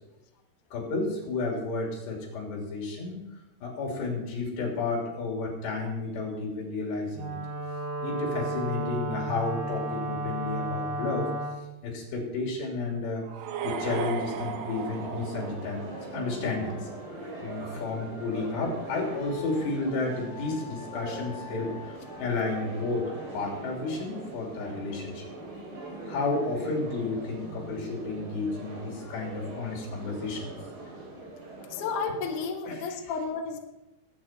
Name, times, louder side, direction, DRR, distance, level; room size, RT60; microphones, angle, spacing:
voice 1, 0.7-3.2 3.6-7.4 8.0-11.3 11.8-13.2 13.6-15.8 16.1-16.8 17.4-23.1 23.3-25.3 26.0-30.5 32.7-32.8, left 3 dB, 75° left, 0 dB, 5.3 m, -32 dB
Wind instrument woodwind instrument, 7.1-11.6, right 2 dB, 60° right, 5.0 m, -33 dB
sound 1, 13.2-16.3, right 8 dB, 80° right, 3.2 m, -36 dB
sound 2, 13.6-32.5, right 2 dB, 35° right, 3.5 m, -41 dB
voice 2, 31.7-33.6, left 5 dB, 60° left, 2 dB, 2.4 m, -32 dB
20.0 x 8.8 x 4.5 m, 0.99 s
omnidirectional pair, 4.9 m